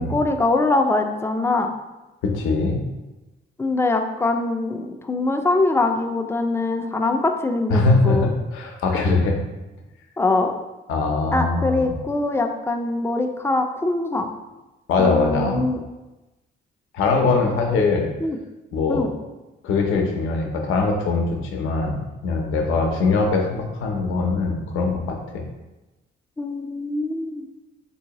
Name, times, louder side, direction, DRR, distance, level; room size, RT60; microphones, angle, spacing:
voice 1, 0.0-1.7 3.6-8.3 10.2-10.6 11.3-14.3 15.0-15.8 17.7-17.9 18.2-18.4 18.9-19.1 26.4-27.4, left 2 dB, 15° left, 5 dB, 0.3 m, -23 dB
voice 2, 2.2-2.8 7.7-9.4 10.9-11.9 14.9-15.6 16.9-18.1 18.7-19.1 19.6-25.4, left 3 dB, 85° left, 2 dB, 0.6 m, -22 dB
3.7 x 2.7 x 2.9 m, 1.1 s
cardioid pair, 90°, 20 cm